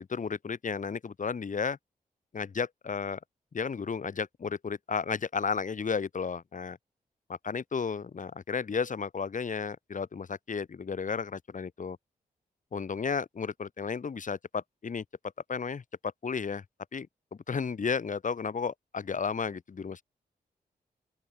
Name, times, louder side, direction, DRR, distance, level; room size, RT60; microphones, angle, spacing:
voice 1, 0.0-1.8 2.3-3.2 3.5-6.8 7.3-12.0 12.7-15.0 15.5-16.6 16.9-20.0, left 5 dB, 55° left, 4.5 m, -33 dB
open air
cardioid pair, 70°, 16 cm